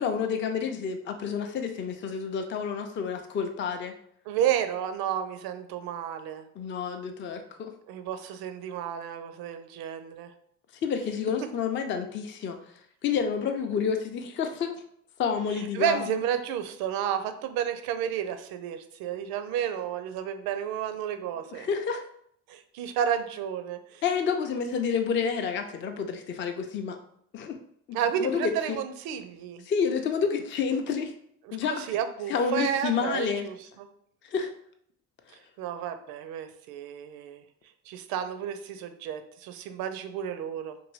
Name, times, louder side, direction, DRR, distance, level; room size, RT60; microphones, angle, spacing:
voice 1, 0.0-3.9 6.6-7.7 10.8-12.6 13.0-14.7 15.2-16.2 21.5-22.0 24.0-27.0 27.3-27.5 27.9-28.8 29.7-31.1 31.5-31.7 32.3-33.5 34.3-34.5, left 6 dB, 30° left, 5 dB, 0.4 m, -29 dB
voice 2, 4.3-6.4 7.9-10.3 15.7-21.7 22.5-24.0 27.9-29.6 31.5-33.9 35.6-37.4 37.9-40.8, right 9 dB, 70° right, 9 dB, 0.5 m, -31 dB
2.6 x 2.6 x 3.0 m, 0.67 s
supercardioid pair, 70°, 38 cm